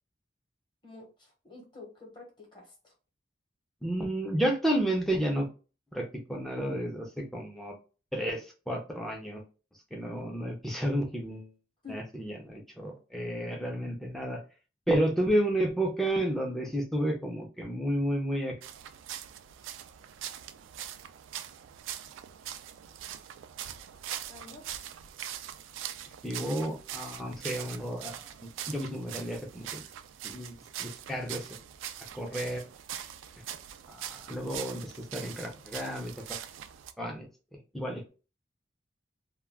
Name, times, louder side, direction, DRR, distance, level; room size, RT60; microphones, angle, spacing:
voice 1, 0.8-2.9 11.8-12.1 24.3-24.7, left 3 dB, 25° left, 0 dB, 0.9 m, -48 dB
voice 2, 3.8-5.5 5.9-7.7 8.1-9.4 9.9-11.5 11.9-14.4 14.9-18.6 26.2-29.9 30.2-31.5 32.1-32.6 33.9-36.4 37.0-37.3 37.7-38.1, right 1 dB, ahead, 0 dB, 0.4 m, -31 dB
sound 1, 18.6-36.9, right 10 dB, 90° right, 0.3 m, -42 dB
2.2 x 2.2 x 3.4 m, 0.34 s
head